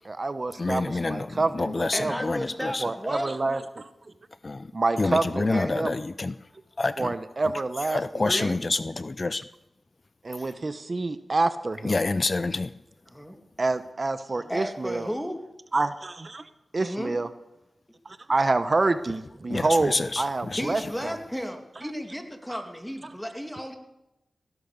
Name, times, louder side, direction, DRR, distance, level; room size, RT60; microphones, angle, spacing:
voice 1, 0.0-2.2 2.8-3.9 4.7-5.9 7.0-8.5 10.2-11.9 13.6-15.1 15.7-16.4 16.7-17.3 18.0-21.1, right 3 dB, 50° right, 12 dB, 0.9 m, -27 dB
voice 2, 0.6-2.8 4.4-4.7 5.0-6.3 6.8-7.1 7.9-9.4 11.8-12.7 19.5-20.6, left 3 dB, 45° left, 15 dB, 0.5 m, -27 dB
voice 3, 1.9-3.3 5.3-5.7 8.2-8.6 13.1-13.4 14.5-15.4 16.8-17.2 20.6-23.7, equal, 5° left, 5 dB, 2.6 m, -33 dB
17.5 x 11.0 x 6.8 m, 0.92 s
cardioid pair, 40°, 0 cm